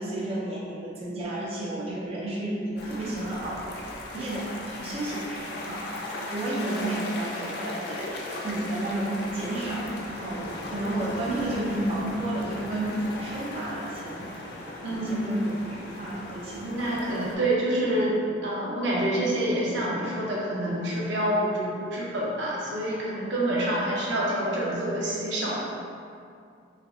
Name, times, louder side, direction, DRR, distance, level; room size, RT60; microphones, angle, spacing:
voice 1, 0.0-3.7 4.1-16.8 17.1-17.3, right 1 dB, 30° right, -6 dB, 0.4 m, -32 dB
sound 1, 2.8-17.3, left 1 dB, 60° left, 0.4 m, -37 dB
voice 2, 14.8-15.3 16.6-25.6, right 1 dB, 70° right, -6 dB, 0.6 m, -27 dB
3.3 x 2.3 x 2.4 m, 2.4 s
head